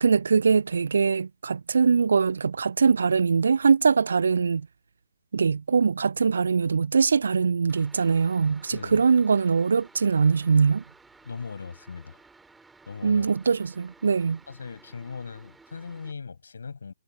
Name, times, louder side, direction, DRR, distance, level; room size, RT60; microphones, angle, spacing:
voice 1, 0.0-4.7 5.3-10.8 13.0-14.4, right 5 dB, 60° right, 0.5 m, -22 dB
sound 1, 7.7-16.1, right 3 dB, 5° right, 4.3 m, -55 dB
voice 2, 11.2-12.2 12.9-13.3 14.5-16.9, left 5 dB, 60° left, 6.6 m, -39 dB
figure-of-eight pair, 125°, 0 cm